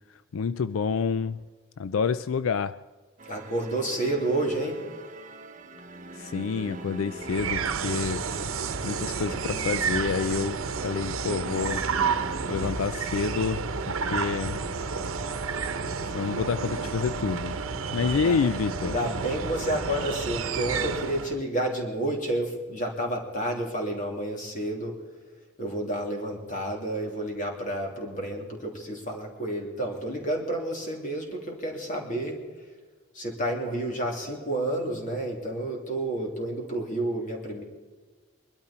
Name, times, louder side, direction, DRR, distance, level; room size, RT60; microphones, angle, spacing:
voice 1, 0.1-1.4 1.8-2.8 6.1-8.2 8.8-11.9 12.5-14.6 16.0-17.6 17.9-19.0, left 5 dB, 85° left, 14 dB, 0.4 m, -28 dB
sound 1, 3.2-12.7, right 2 dB, 40° right, 0.8 m, -42 dB
voice 2, 3.3-4.8 18.0-18.4 18.8-25.0 25.6-32.4 33.1-37.6, right 1 dB, 40° left, 1 dB, 3.1 m, -30 dB
sound 2, 7.2-21.4, right 5 dB, 90° right, 0.9 m, -31 dB
23.0 x 12.5 x 4.4 m, 1.4 s
head